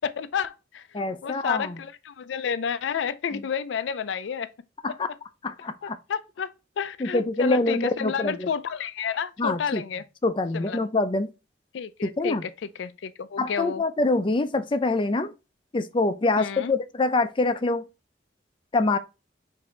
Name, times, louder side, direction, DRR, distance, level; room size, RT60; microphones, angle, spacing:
voice 1, 0.0-4.5 4.9-5.0 5.8-10.0 10.5-10.9 11.7-13.8 16.4-16.7, left 7 dB, 85° left, 0.4 m, -31 dB
voice 2, 0.9-1.8 3.3-3.4 4.8-5.1 5.4-6.0 7.0-8.5 9.4-9.8 10.2-11.3 12.0-12.4 13.4-15.3 15.7-17.8 18.7-19.0, left 2 dB, 30° left, 0.5 m, -25 dB
5.9 x 2.7 x 3.2 m
head